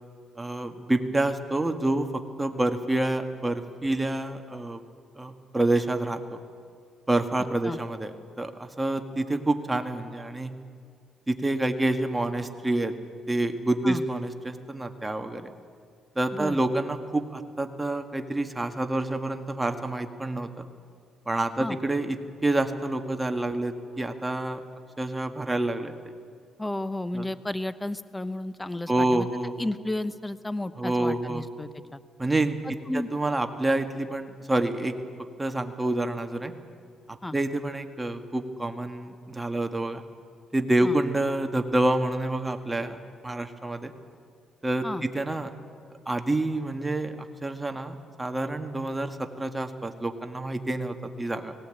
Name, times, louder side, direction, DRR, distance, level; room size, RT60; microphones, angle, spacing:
voice 1, 0.4-4.8 5.2-6.4 7.1-10.5 11.3-12.9 13.3-15.5 16.1-20.6 21.2-24.6 25.0-26.0 27.1-27.3 28.9-29.5 30.8-31.4 32.2-32.6 32.9-34.9 35.4-36.5 37.3-40.0 40.5-43.9 44.6-45.5 46.1-51.5, right 2 dB, 15° right, 6 dB, 1.6 m, -28 dB
voice 2, 26.6-29.3 29.6-32.0 32.6-33.1 37.2-37.3 40.8-41.0 44.8-45.0, left 1 dB, 10° left, 14 dB, 0.9 m, -32 dB
18.5 x 17.0 x 8.9 m, 2.3 s
cardioid pair, 90°, 0 cm